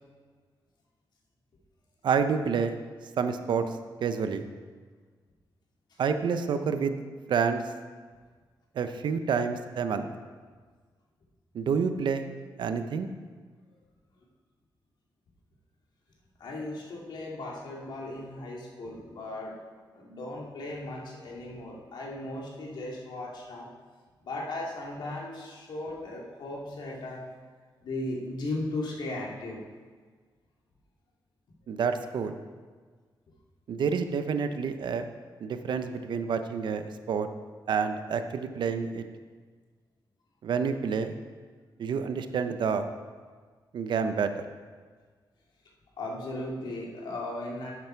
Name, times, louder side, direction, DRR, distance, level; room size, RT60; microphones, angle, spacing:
voice 1, 2.0-2.7 3.2-3.6 4.0-4.5 6.0-7.0 7.3-7.6 8.8-10.1 11.5-12.2 12.6-13.1 31.7-32.3 33.7-35.1 35.4-37.3 37.7-39.0 40.4-41.1 41.8-42.8 43.7-44.4, right 6 dB, 70° right, 8 dB, 0.7 m, -28 dB
voice 2, 16.4-19.5 19.9-23.7 24.2-27.2 27.8-29.6 46.0-47.7, left 2 dB, 70° left, -3 dB, 2.5 m, -37 dB
11.0 x 9.3 x 4.5 m, 1.5 s
wide cardioid pair, 150°, 8 cm